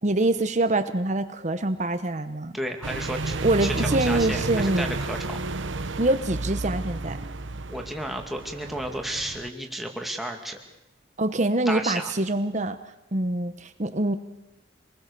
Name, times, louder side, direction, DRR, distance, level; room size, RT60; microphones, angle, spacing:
voice 1, 0.0-2.5 3.4-4.9 6.0-7.2 11.2-12.8 13.1-14.2, right 2 dB, 40° right, 9 dB, 1.0 m, -25 dB
voice 2, 2.5-5.4 7.7-10.6 11.7-12.1, right 1 dB, ahead, 2 dB, 2.3 m, -32 dB
sound 1, 2.8-9.5, right 3 dB, 80° right, 1.0 m, -31 dB
26.5 x 20.5 x 6.8 m, 0.93 s
head